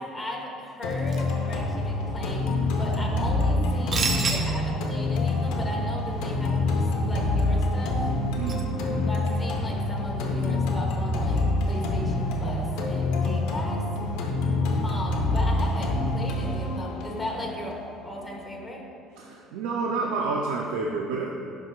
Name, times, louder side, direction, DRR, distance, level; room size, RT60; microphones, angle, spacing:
voice 1, 0.0-2.5 2.8-8.1 9.0-13.9 14.8-18.8, left 1 dB, 10° left, -3 dB, 1.3 m, -36 dB
sound 1, 0.8-18.8, left 2 dB, 85° left, 0.9 m, -26 dB
sound 2, 0.9-8.9, right 4 dB, 40° right, 0.7 m, -36 dB
voice 2, 8.4-9.3 19.1-21.3, right 4 dB, 90° right, -1 dB, 0.5 m, -29 dB
11.5 x 4.8 x 2.4 m, 2.4 s
cardioid pair, 120°, 0 cm